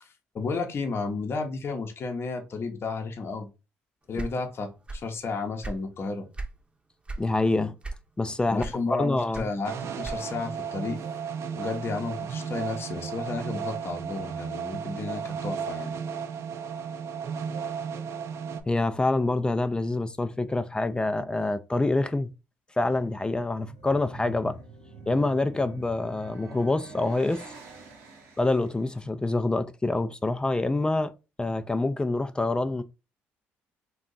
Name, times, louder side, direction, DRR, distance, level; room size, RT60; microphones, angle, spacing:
voice 1, 0.0-3.5 4.1-6.3 8.5-11.0 11.5-15.9, left 4 dB, 45° left, 0.7 m, -32 dB
sound 1, 4.1-5.2 5.4-6.6 7.0-7.3 7.8-8.3 8.6-10.5, right 2 dB, 20° right, 0.7 m, -36 dB
voice 2, 7.2-7.8 8.2-8.6 9.0-9.5 18.7-22.3 22.8-24.6 25.1-27.4 28.4-31.1 31.4-32.8, left 2 dB, 15° left, 0.3 m, -26 dB
sound 2, 9.6-18.6, right 7 dB, 60° right, 0.4 m, -34 dB
sound 3, 23.5-28.8, right 3 dB, 80° right, 0.9 m, -45 dB
2.6 x 2.3 x 3.8 m
supercardioid pair, 65°, 5 cm